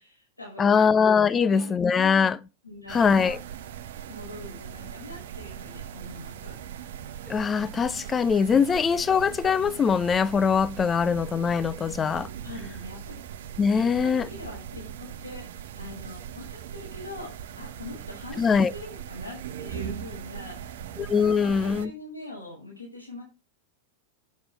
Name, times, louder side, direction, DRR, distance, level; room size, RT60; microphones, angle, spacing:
voice 1, 0.0-0.9 1.3-2.3 2.6-3.4 4.1-6.6 12.4-13.2 13.7-20.8 21.2-23.2, left 2 dB, 90° left, 5.9 m, -42 dB
voice 2, 0.6-2.4 2.9-3.4 7.3-12.3 13.6-14.3 18.4-18.7 21.0-21.9, left 6 dB, 20° left, 0.5 m, -22 dB
sound 1, 2.9-21.9, right 9 dB, 55° right, 0.9 m, -40 dB
8.7 x 8.4 x 4.8 m
figure-of-eight pair, 90°, 0 cm